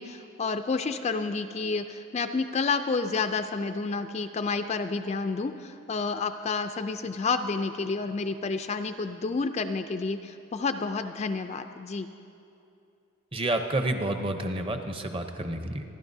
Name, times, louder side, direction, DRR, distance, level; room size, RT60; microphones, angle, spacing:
voice 1, 0.0-12.1, left 4 dB, 30° left, 8 dB, 0.3 m, -30 dB
voice 2, 13.3-15.8, right 1 dB, 25° right, 6 dB, 0.7 m, -29 dB
28.0 x 11.5 x 2.7 m, 2.7 s
head